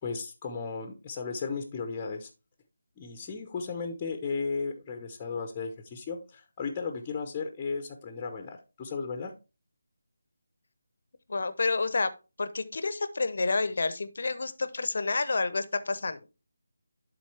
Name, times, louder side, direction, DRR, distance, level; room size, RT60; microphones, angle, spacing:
voice 1, 0.0-2.3 3.0-9.3, left 5 dB, 20° left, 6 dB, 0.8 m, -35 dB
voice 2, 11.3-12.1 12.4-16.2, left 3 dB, 55° left, 12 dB, 0.7 m, -29 dB
11.5 x 3.8 x 3.3 m, 0.30 s
figure-of-eight pair, 160°, 0 cm